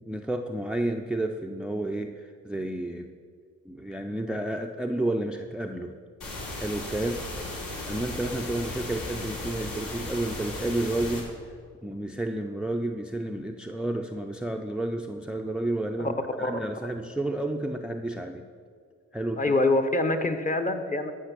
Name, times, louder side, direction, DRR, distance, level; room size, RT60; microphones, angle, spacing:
voice 1, 0.0-3.1 3.7-6.0 6.6-7.3 7.9-11.3 11.8-18.4 19.1-19.6, right 1 dB, 5° right, 5 dB, 0.5 m, -31 dB
sound 1, 6.2-11.2, left 2 dB, 75° left, 3.4 m, -36 dB
voice 2, 19.4-21.1, left 2 dB, 25° left, 7 dB, 1.0 m, -25 dB
13.5 x 5.7 x 6.1 m, 2.1 s
cardioid pair, 90°, 30 cm